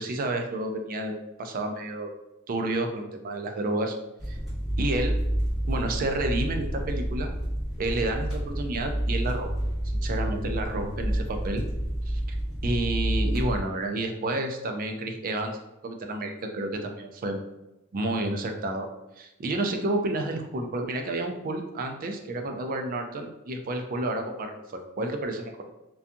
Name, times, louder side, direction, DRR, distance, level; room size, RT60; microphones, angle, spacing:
voice 1, 0.0-2.1 2.5-4.0 4.3-4.4 4.8-5.2 5.7-7.3 7.8-9.5 9.8-11.6 12.1-12.4 12.6-15.6 15.8-17.4 17.9-18.9 19.2-25.6, right 2 dB, 40° right, 4 dB, 0.3 m, -30 dB
sound 1, 4.2-13.6, right 1 dB, ahead, 1.1 m, -29 dB
2.6 x 2.3 x 2.5 m, 0.96 s
head